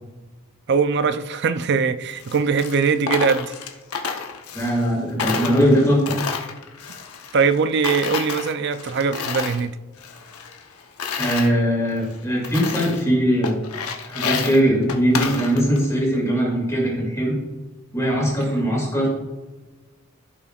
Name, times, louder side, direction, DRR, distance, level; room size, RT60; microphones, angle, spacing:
voice 1, 0.7-3.6 7.3-9.8, right 5 dB, 50° right, 0.4 m, -21 dB
Coin (dropping), 2.1-4.9 5.2-7.6 7.8-9.6 10.0-11.5 12.0-12.1 12.4-13.1 13.4-15.8, left 5 dB, 85° left, 0.9 m, -30 dB
voice 2, 4.5-6.1 11.2-13.6 14.0-17.3 17.9-19.1, equal, 15° left, 2.2 m, -20 dB
15.0 x 5.7 x 2.4 m
head